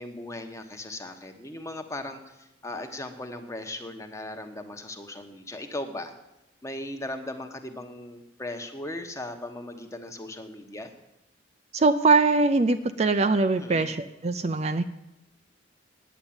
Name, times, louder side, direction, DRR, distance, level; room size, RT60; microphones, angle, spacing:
voice 1, 0.0-6.1 6.6-10.9 13.6-13.9, left 1 dB, 15° left, 6 dB, 1.0 m, -38 dB
voice 2, 11.7-14.8, right 3 dB, 35° right, 9 dB, 0.4 m, -22 dB
9.3 x 8.9 x 8.7 m, 0.92 s
head